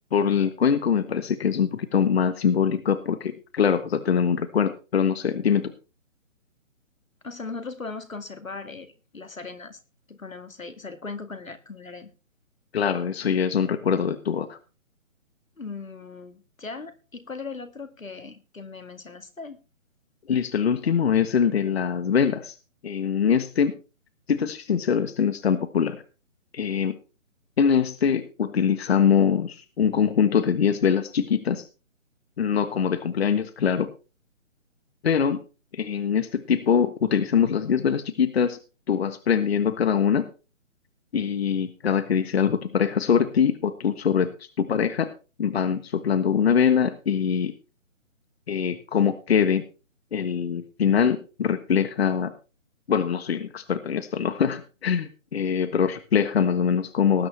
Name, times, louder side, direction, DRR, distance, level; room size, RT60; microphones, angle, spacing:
voice 1, 0.1-5.7 12.7-14.6 20.3-22.5 22.8-23.8 24.3-26.0 26.5-27.0 27.6-31.7 32.4-33.9 35.0-35.4 35.7-38.6 38.9-40.3 41.1-45.1 45.4-47.5 48.5-49.6 50.1-52.3 52.9-57.3, left 7 dB, 50° left, 12 dB, 1.3 m, -23 dB
voice 2, 7.2-9.8 10.1-12.1 15.6-19.6, left 4 dB, 90° left, 10 dB, 2.2 m, -38 dB
19.0 x 9.3 x 3.3 m, 0.33 s
figure-of-eight pair, 145°, 39 cm